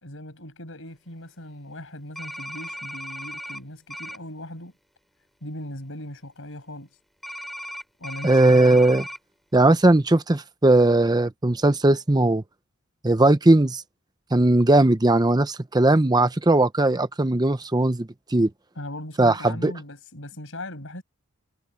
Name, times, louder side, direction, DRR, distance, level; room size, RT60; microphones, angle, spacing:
voice 1, 0.0-4.7 5.4-6.9 8.0-8.5 18.8-21.0, left 1 dB, 65° left, 5.9 m, -39 dB
sound 1, 2.1-3.6 3.9-4.2 7.2-9.2, equal, ahead, 6.9 m, -36 dB
voice 2, 8.2-9.1 9.5-12.4 13.0-13.8 14.3-18.5 19.2-19.7, right 2 dB, 20° right, 0.7 m, -19 dB
head